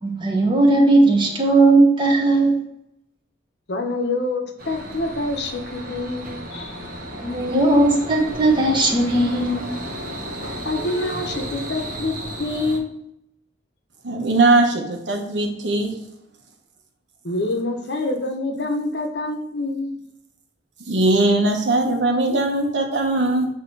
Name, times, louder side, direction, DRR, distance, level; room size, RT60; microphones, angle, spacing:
voice 1, 0.0-2.6 7.2-9.7, right 2 dB, 25° right, 0 dB, 1.2 m, -17 dB
voice 2, 3.7-6.8 10.6-13.0 17.2-20.0, left 2 dB, 60° left, 4 dB, 0.9 m, -26 dB
sound 1, 4.6-12.8, equal, 50° right, 1.2 m, -33 dB
voice 3, 14.0-15.9 20.9-23.5, right 2 dB, 70° right, 2 dB, 1.1 m, -20 dB
8.4 x 2.9 x 4.5 m, 0.78 s
head